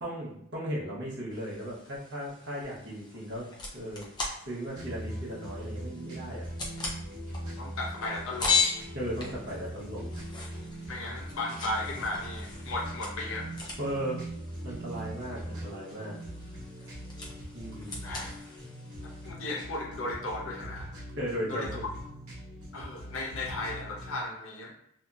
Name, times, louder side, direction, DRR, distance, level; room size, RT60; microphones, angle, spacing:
voice 1, 0.0-3.5 3.7-4.1 4.5-6.5 8.9-10.2 13.8-14.3 14.6-16.2 17.5-18.0 21.2-21.9, equal, 55° right, -6 dB, 0.9 m, -36 dB
sound 1, 1.3-19.3, left 4 dB, 20° left, 0.5 m, -38 dB
sound 2, 4.7-24.1, right 1 dB, 85° right, 0.9 m, -41 dB
voice 2, 7.6-8.6 10.9-13.5 18.0-18.3 19.0-21.0 21.5-21.7 22.7-24.7, left 2 dB, 65° left, -1 dB, 0.6 m, -35 dB
2.8 x 2.6 x 2.3 m, 0.75 s
head